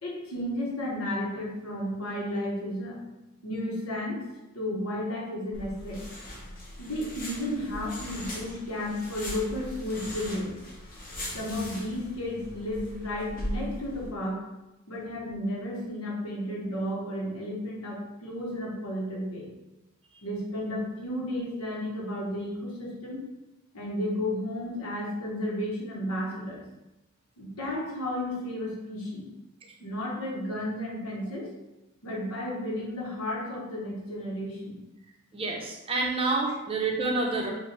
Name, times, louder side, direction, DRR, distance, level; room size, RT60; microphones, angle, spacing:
voice 1, 0.0-3.0 3.4-4.2 4.5-6.0 6.8-10.5 11.3-14.4 14.9-19.5 20.2-23.2 23.7-26.6 27.4-29.3 29.8-31.5 32.0-34.8, left 1 dB, 90° left, -3 dB, 1.2 m, -33 dB
sound 1, 5.5-14.1, left 1 dB, 40° left, 1.1 m, -40 dB
voice 2, 35.3-37.5, right 3 dB, 25° right, 0 dB, 0.6 m, -28 dB
5.4 x 2.6 x 3.3 m, 0.99 s
head